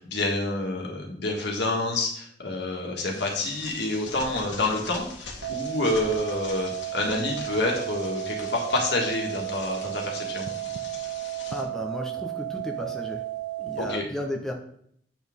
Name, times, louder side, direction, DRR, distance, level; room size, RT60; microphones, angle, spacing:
voice 1, 0.0-10.5 13.8-14.0, left 2 dB, 70° left, 0 dB, 1.8 m, -28 dB
sound 1, 3.1-11.6, left 4 dB, 85° left, 1.7 m, -43 dB
sound 2, 5.4-14.0, right 15 dB, 85° right, 0.7 m, -33 dB
voice 2, 11.5-13.2 13.6-14.5, left 1 dB, 5° left, 0 dB, 0.8 m, -34 dB
8.4 x 6.2 x 3.6 m, 0.67 s
head